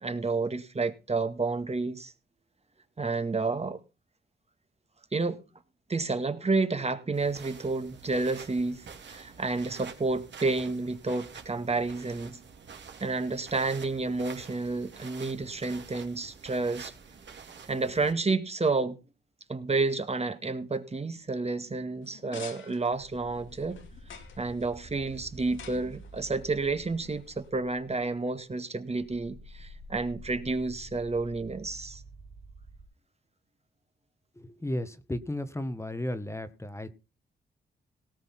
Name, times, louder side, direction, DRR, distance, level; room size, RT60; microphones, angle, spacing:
voice 1, 0.0-2.1 3.0-3.8 5.1-5.4 5.9-12.4 13.0-16.9 17.7-19.0 19.5-23.8 24.4-32.0, right 3 dB, 35° right, 2.0 m, -30 dB
sound 1, 7.1-18.1, right 6 dB, 70° right, 3.2 m, -48 dB
sound 2, 22.0-27.5, left 7 dB, 85° left, 2.7 m, -51 dB
sound 3, 22.9-28.5 28.8-32.8, equal, 90° right, 4.0 m, -49 dB
voice 2, 34.4-36.9, left 1 dB, 15° left, 1.4 m, -34 dB
18.0 x 6.4 x 5.8 m
cardioid pair, 70°, 19 cm